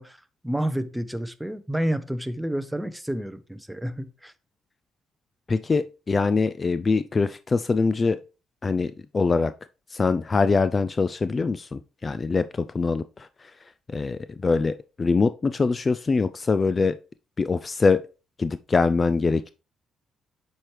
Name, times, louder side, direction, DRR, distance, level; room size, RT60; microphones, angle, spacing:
voice 1, 0.0-4.3, right 1 dB, 5° right, 0.7 m, -30 dB
voice 2, 5.5-8.2 8.6-9.5 9.9-13.0 13.9-17.0 17.4-18.0 18.4-19.5, left 4 dB, 30° left, 0.3 m, -23 dB
7.6 x 4.5 x 3.2 m
cardioid pair, 90°, 0 cm